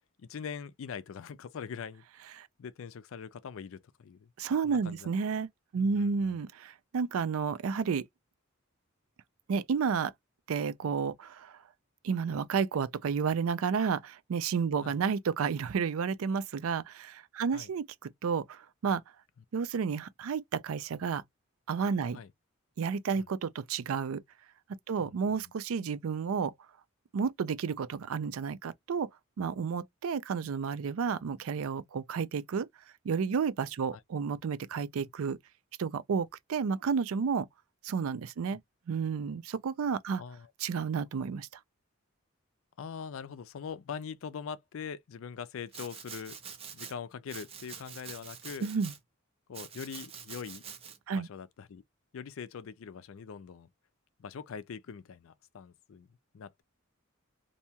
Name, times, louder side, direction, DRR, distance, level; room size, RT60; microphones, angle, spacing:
voice 1, 0.2-2.0 2.6-4.3 4.6-5.1 5.8-6.4 14.8-15.0 17.5-17.7 22.1-22.3 23.1-23.2 25.0-25.5 33.9-34.0 35.0-35.1 38.5-38.6 40.2-40.5 42.8-46.4 46.7-48.7 49.5-50.6 51.1-51.8 52.1-53.7 54.2-56.1 56.3-56.6, left 6 dB, 65° left, 0.4 m, -42 dB
voice 2, 4.4-5.5 5.7-8.0 9.5-10.1 10.5-11.5 12.0-19.0 19.5-21.2 21.7-22.2 22.8-24.2 24.9-26.5 27.1-29.1 29.4-32.7 33.0-35.4 35.8-37.5 37.8-38.6 38.9-40.2 40.6-41.5 48.6-48.9 51.1-51.3, right 6 dB, 70° right, 0.4 m, -31 dB
Domestic sounds home sounds, 45.7-46.9 47.3-49.0 49.5-51.0, right 7 dB, 30° right, 0.6 m, -46 dB
2.7 x 2.2 x 2.7 m
head